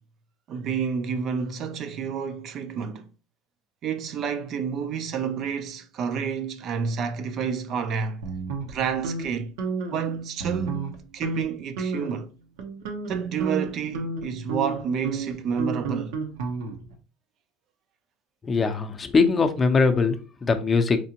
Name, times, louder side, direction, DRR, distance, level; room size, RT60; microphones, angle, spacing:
voice 1, 0.5-3.1 3.8-8.2 8.6-9.5 9.9-12.3 13.1-16.2, right 6 dB, 50° right, 0.4 m, -29 dB
sound 1, 8.2-9.2 9.6-10.0 10.4-10.9 11.2-11.4 11.8-12.2 12.6-16.9, right 4 dB, 80° right, 0.9 m, -31 dB
voice 2, 18.4-21.0, left 4 dB, 25° left, 0.6 m, -21 dB
4.4 x 2.4 x 2.8 m
supercardioid pair, 105°, 0 cm